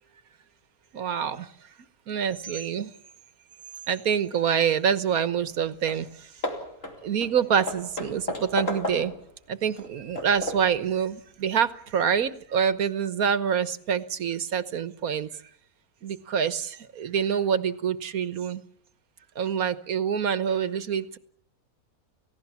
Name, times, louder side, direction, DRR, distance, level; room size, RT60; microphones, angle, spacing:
voice 1, 0.9-1.5 2.1-2.9 3.9-6.4 7.0-9.1 9.5-15.4 16.0-18.6 19.3-21.2, right 7 dB, 80° right, 13 dB, 1.6 m, -26 dB
Hammer / Wood, 5.5-5.6 5.9-6.1 6.4-9.3 9.8-10.8, left 1 dB, 60° left, 4.4 m, -34 dB
29.5 x 17.0 x 7.2 m, 0.64 s
omnidirectional pair, 1.5 m